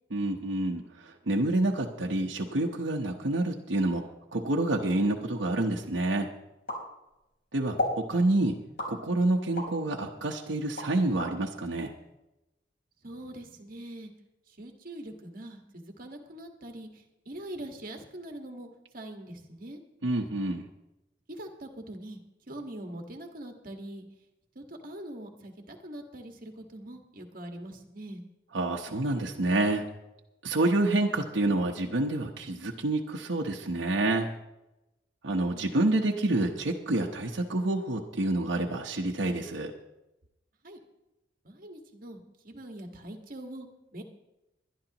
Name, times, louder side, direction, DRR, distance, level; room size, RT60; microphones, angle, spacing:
voice 1, 0.1-4.0 4.3-6.3 7.5-8.6 8.9-11.9 20.0-20.6 28.5-29.8 30.4-34.3 35.2-39.7, right 2 dB, 80° right, 0 dB, 1.1 m, -28 dB
sound 1, 6.7-7.4 7.8-8.0 8.8-9.8 10.3-11.3, left 2 dB, 60° left, 3.8 m, -33 dB
voice 2, 13.0-14.1 14.6-18.7 18.9-19.8 21.3-22.2 22.5-24.0 24.5-28.2 40.6-40.8 41.4-44.0, right 1 dB, 50° right, 3 dB, 1.7 m, -43 dB
22.0 x 11.0 x 3.0 m, 0.95 s
head